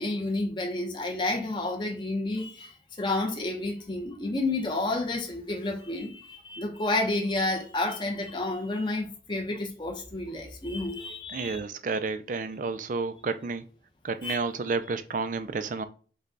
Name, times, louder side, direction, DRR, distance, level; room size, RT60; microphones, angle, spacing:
voice 1, 0.0-11.6 14.2-14.4, left 2 dB, 25° left, 0.8 m, -30 dB
voice 2, 11.3-13.6 14.0-15.8, right 4 dB, 45° right, 0.4 m, -31 dB
5.2 x 2.3 x 3.9 m
head